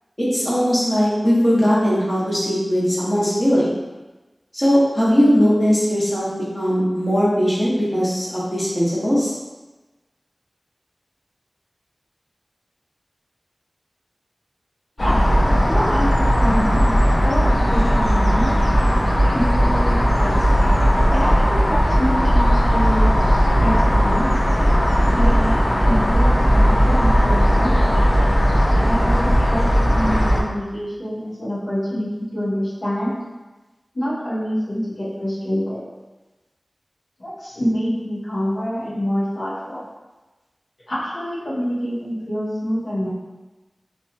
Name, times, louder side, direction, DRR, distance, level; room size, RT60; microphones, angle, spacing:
voice 1, 0.2-3.8 4.5-6.3 6.5-9.3, equal, 20° left, -8 dB, 0.9 m, -19 dB
sound 1, 15.0-30.4, equal, 50° left, 0.4 m, -17 dB
voice 2, 15.7-16.1 16.4-18.6 19.3-20.4 21.1-23.1 23.6-24.3 25.1-25.6 25.8-27.9 28.9-33.2 33.9-35.8 37.2-39.8 40.9-43.1, equal, 85° left, -10 dB, 0.9 m, -26 dB
2.8 x 2.2 x 2.6 m, 1.2 s
wide cardioid pair, 50°, 0 cm